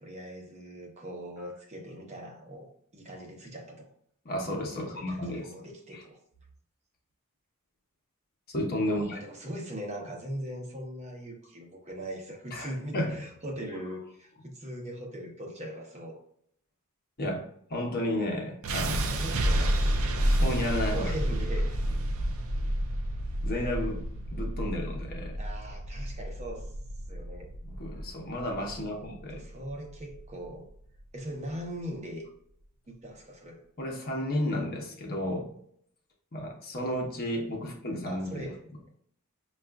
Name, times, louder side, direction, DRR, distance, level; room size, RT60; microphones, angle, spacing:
voice 1, 0.0-3.9 4.7-6.2 8.8-16.2 18.8-20.6 20.9-21.8 25.4-26.7 27.1-27.5 28.9-30.7 31.1-32.3 32.9-33.6 38.1-38.6, right 1 dB, 30° right, 1 dB, 0.8 m, -40 dB
voice 2, 4.2-5.5 5.9-6.0 8.5-9.2 12.5-13.2 17.2-19.4 20.2-21.1 23.4-24.0 24.3-25.4 27.6-29.4 33.8-35.5 36.3-38.5, left 1 dB, 45° left, 0 dB, 0.9 m, -32 dB
sound 1, 18.6-30.7, right 1 dB, 75° right, 0.5 m, -30 dB
5.7 x 2.4 x 2.3 m, 0.66 s
head